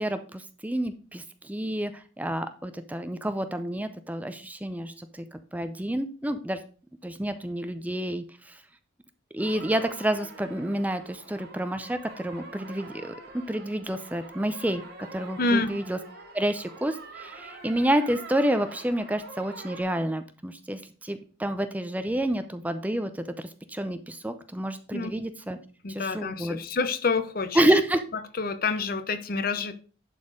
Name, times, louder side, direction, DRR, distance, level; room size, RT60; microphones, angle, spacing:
voice 1, 0.0-6.6 7.0-8.6 9.3-14.8 15.1-16.0 16.3-25.6 25.9-26.6 27.6-28.0, right 1 dB, 10° right, 0.5 m, -29 dB
sound 1, 9.4-19.8, right 3 dB, 55° right, 2.7 m, -45 dB
voice 2, 15.4-15.7 24.9-25.1 25.8-27.7 28.3-29.8, left 3 dB, 50° left, 0.8 m, -27 dB
11.0 x 4.3 x 5.0 m
head